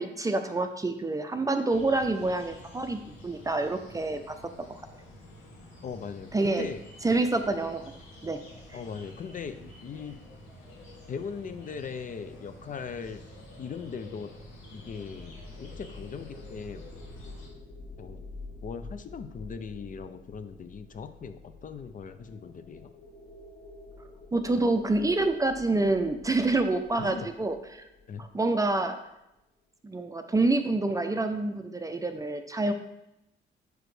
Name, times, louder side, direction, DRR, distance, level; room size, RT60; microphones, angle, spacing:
voice 1, 0.0-4.4 6.3-6.7 7.0-7.8 8.2-8.4 24.3-27.8 28.2-29.0 29.8-32.7, right 2 dB, 15° right, 7 dB, 0.5 m, -27 dB
sound 1, 1.7-17.5, equal, 85° left, 2.1 m, -49 dB
voice 2, 5.8-6.8 8.7-10.2 11.1-13.2 13.6-14.3 14.7-16.9 18.0-18.3 18.6-22.9 27.0-27.3 28.1-28.2, left 6 dB, 45° left, 9 dB, 0.5 m, -39 dB
sound 2, 14.2-29.1, left 2 dB, 25° left, 0.9 m, -48 dB
6.2 x 4.9 x 3.2 m, 0.88 s
cardioid pair, 90°, 20 cm